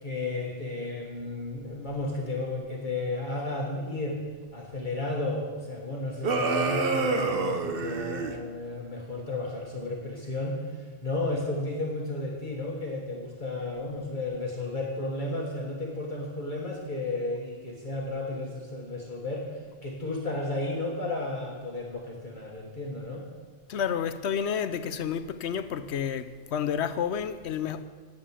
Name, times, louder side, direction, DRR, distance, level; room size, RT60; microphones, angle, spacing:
voice 1, 0.0-4.2 4.5-23.3, left 2 dB, 45° left, 1.6 m, -33 dB
sound 1, 6.2-8.4, right 4 dB, 60° right, 1.1 m, -27 dB
voice 2, 23.7-27.8, left 8 dB, 80° left, 0.9 m, -30 dB
10.0 x 7.7 x 8.6 m
omnidirectional pair, 1.1 m